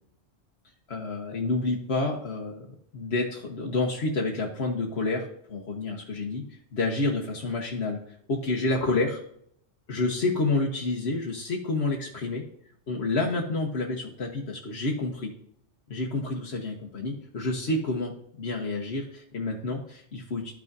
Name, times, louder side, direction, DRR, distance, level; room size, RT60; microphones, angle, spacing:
voice 1, 0.9-2.7 2.9-8.0 8.3-9.2 9.9-12.4 12.9-15.3 15.9-20.5, left 2 dB, 60° left, -1 dB, 1.4 m, -29 dB
14.0 x 6.0 x 2.7 m, 0.66 s
omnidirectional pair, 1.3 m